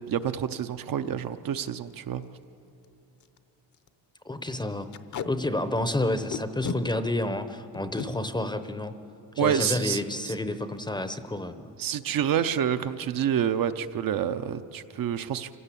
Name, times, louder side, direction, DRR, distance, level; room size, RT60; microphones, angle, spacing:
voice 1, 0.0-2.2 9.4-10.0 11.8-15.6, right 9 dB, 50° right, 9 dB, 0.7 m, -28 dB
Packing tape duct tape, 1.3-1.5 1.9-2.0 2.2-2.4 2.8-2.9 3.2-3.4 3.7-3.9 4.9-5.3 6.3-6.8 7.7-8.1 9.6-9.8 10.2-10.3 10.6-11.0, left 7 dB, 40° left, 0.8 m, -34 dB
voice 2, 4.2-4.9 5.2-8.9 9.3-11.7, left 1 dB, 10° left, 10 dB, 0.7 m, -30 dB
26.0 x 16.5 x 8.4 m, 2.8 s
cardioid pair, 140°, 44 cm